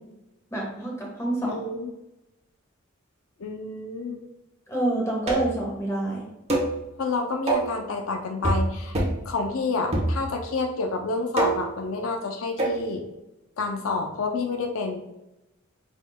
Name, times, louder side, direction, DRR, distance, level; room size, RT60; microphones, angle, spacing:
voice 1, 0.5-1.6 4.7-6.3, right 1 dB, 15° left, -3 dB, 1.3 m, -27 dB
voice 2, 1.4-1.9 3.4-4.2 7.0-9.0 9.3-13.0 13.6-15.0, left 3 dB, 80° left, 3 dB, 0.5 m, -29 dB
sound 1, 5.3-5.6 6.5-6.8 7.5-7.8 8.4-8.7 8.9-9.2 9.9-10.5 11.4-11.8 12.6-12.8, right 2 dB, 30° right, 0.9 m, -25 dB
5.1 x 3.7 x 2.2 m, 0.94 s
head